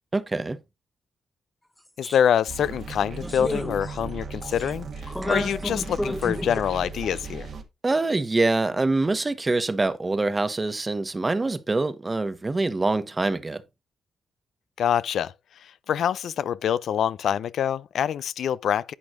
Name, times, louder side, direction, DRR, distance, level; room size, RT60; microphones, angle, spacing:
voice 1, 0.1-0.6 7.8-13.6, right 2 dB, 30° right, 1.2 m, -25 dB
voice 2, 2.0-7.5 14.8-15.3 15.6-18.9, left 9 dB, 75° left, 0.4 m, -25 dB
sound 1, 2.0-2.2 2.6-2.7 3.2-4.1 4.4-4.7 5.1-6.6, left 1 dB, 10° left, 0.7 m, -31 dB
sound 2, 2.5-7.6, right 4 dB, 65° right, 1.8 m, -37 dB
11.0 x 8.6 x 2.5 m
supercardioid pair, 45°, 0 cm